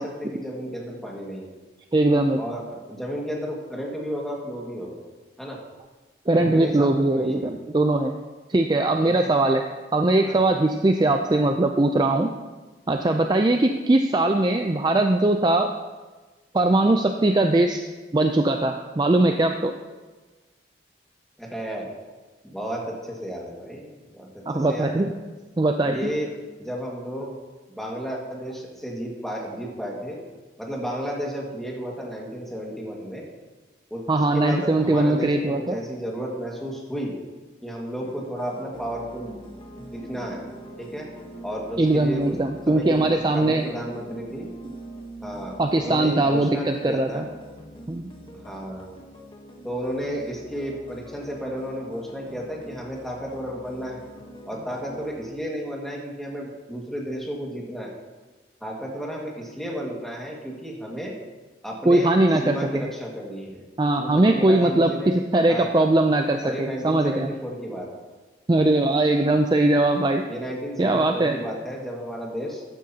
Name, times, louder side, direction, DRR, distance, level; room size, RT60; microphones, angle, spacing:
voice 1, 0.0-1.5 2.4-5.0 5.4-5.6 6.3-7.5 9.0-9.3 10.2-10.4 21.4-21.9 22.4-24.3 24.5-25.0 25.8-26.3 26.6-27.3 27.7-30.2 30.6-33.2 33.9-37.1 37.6-39.3 39.9-40.4 40.8-41.1 41.4-42.3 42.7-44.5 45.2-47.2 48.3-48.9 49.6-54.0 54.4-57.9 58.6-61.1 61.6-62.1 62.4-63.6 64.0-65.1 65.5-65.9 66.4-67.9 70.3-72.6, equal, ahead, -3 dB, 1.8 m, -33 dB
voice 2, 1.9-2.4 6.3-8.1 8.5-9.6 9.9-12.3 12.9-15.7 16.5-17.8 18.1-19.7 24.5-25.1 25.6-26.1 34.1-35.8 41.8-43.6 45.6-47.3 47.9-48.1 61.9-62.9 63.8-67.3 68.5-70.2 70.8-71.4, right 2 dB, 25° right, 5 dB, 0.4 m, -20 dB
sound 1, 38.0-55.3, right 1 dB, 30° left, 1.1 m, -43 dB
14.0 x 9.9 x 2.8 m, 1.3 s
head